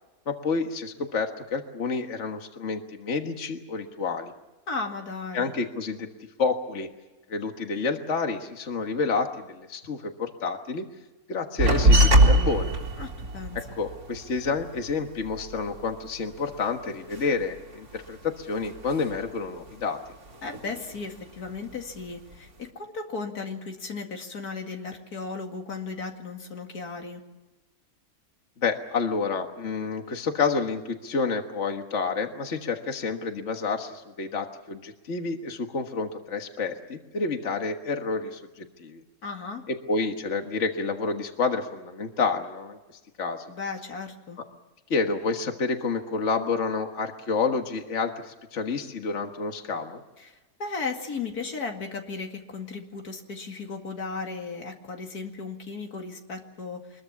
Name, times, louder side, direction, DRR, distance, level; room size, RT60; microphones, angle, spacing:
voice 1, 0.3-4.3 5.3-6.1 6.4-6.9 7.3-10.9 11.3-12.7 13.6-20.0 28.6-39.0 39.7-42.8 43.2-43.5 44.9-50.0, left 4 dB, 50° left, 5 dB, 1.8 m, -29 dB
voice 2, 4.7-5.5 13.0-13.6 20.4-27.2 39.2-39.6 43.5-44.4 50.2-57.0, left 4 dB, 90° left, 3 dB, 2.7 m, -35 dB
sound 1, 11.6-16.5 16.8-18.2 18.5-19.4 19.7-21.0 21.4-22.1, right 1 dB, 90° right, 3.2 m, -23 dB
24.5 x 21.5 x 7.2 m, 1.1 s
omnidirectional pair, 1.6 m